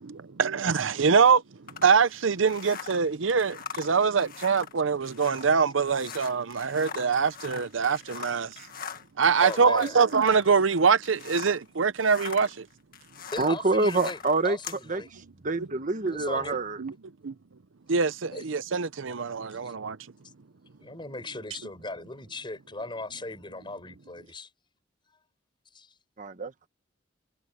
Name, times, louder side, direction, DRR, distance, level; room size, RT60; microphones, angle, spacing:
voice 1, 0.0-1.4 1.8-8.5 9.2-12.7 16.8-16.9 17.2-17.3 17.9-20.0, right 5 dB, 75° right, 0.7 m, -24 dB
sound 1, 1.7-11.7 11.9-14.8, left 7 dB, 50° left, 1.7 m, -42 dB
voice 2, 9.4-10.0 13.3-15.1 16.1-16.6 18.3-18.5 19.6-19.7 20.8-24.5 25.7-25.9, left 2 dB, 25° left, 6.4 m, -38 dB
voice 3, 13.4-14.6 14.9-15.0 15.4-16.8 26.2-26.7, right 3 dB, 40° right, 1.2 m, -26 dB
head